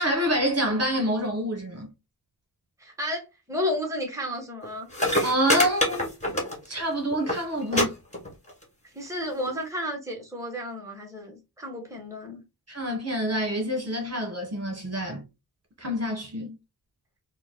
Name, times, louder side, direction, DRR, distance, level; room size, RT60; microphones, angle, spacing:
voice 1, 0.0-1.9 5.2-6.1 6.7-8.0 12.7-15.2 15.8-16.6, equal, 40° right, 1.4 m, -27 dB
voice 2, 2.8-4.9 8.9-12.4, left 1 dB, 10° right, 1.4 m, -32 dB
sound 1, 4.6-4.7 4.9-6.8 7.1-7.4 7.7-7.8 8.1-8.6 9.5-9.6, left 1 dB, 20° left, 1.8 m, -25 dB
4.4 x 2.4 x 2.2 m
wide cardioid pair, 80°, 37 cm